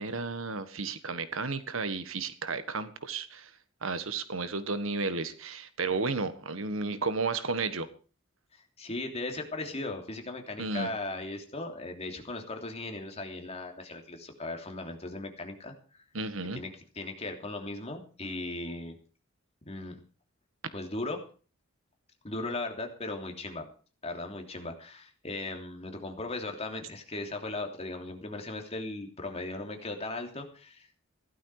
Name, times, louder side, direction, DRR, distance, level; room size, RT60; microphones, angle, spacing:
voice 1, 0.0-3.5 3.8-7.9 10.6-10.9 16.1-16.6, right 3 dB, 85° right, 12 dB, 1.6 m, -33 dB
voice 2, 8.5-16.0 16.5-19.0 19.6-20.0 20.7-21.2 22.2-23.7 24.0-31.0, left 2 dB, 30° left, 4 dB, 3.0 m, -38 dB
16.0 x 12.5 x 4.9 m, 0.38 s
head